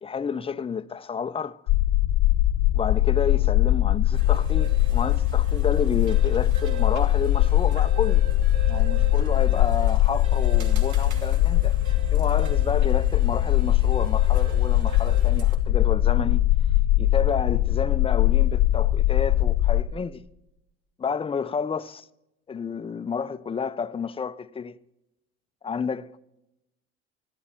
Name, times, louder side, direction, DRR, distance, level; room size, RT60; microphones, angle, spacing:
voice 1, 0.0-1.6 2.7-8.3 8.7-16.4 17.0-20.2 21.0-22.0 22.5-24.8 25.6-26.2, left 6 dB, 15° left, 0.6 m, -30 dB
sound 1, 1.7-19.8, left 14 dB, 65° left, 1.1 m, -21 dB
sound 2, 4.1-15.5, right 9 dB, 60° right, 2.6 m, -43 dB
25.0 x 9.9 x 4.5 m
hypercardioid pair, 65°, 33 cm